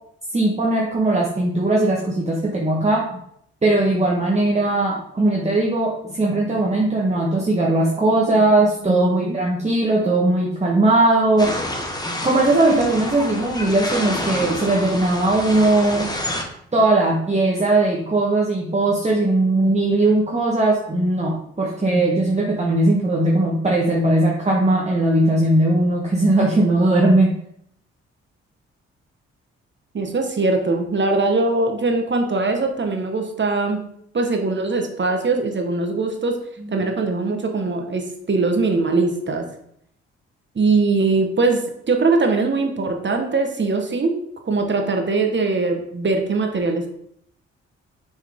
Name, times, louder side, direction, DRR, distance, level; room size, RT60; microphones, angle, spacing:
voice 1, 0.3-3.0 3.6-11.5 12.2-16.1 16.7-27.3 36.6-36.8, right 2 dB, 25° right, -2 dB, 1.5 m, -19 dB
voice 2, 8.8-9.4 29.9-33.8 34.1-36.4 36.7-39.5 40.5-44.1 44.4-46.9, right 3 dB, 40° right, 4 dB, 1.4 m, -21 dB
sound 1, 11.4-16.4, left 1 dB, 15° left, 1.5 m, -28 dB
6.8 x 4.5 x 3.7 m, 0.70 s
supercardioid pair, 50°, 29 cm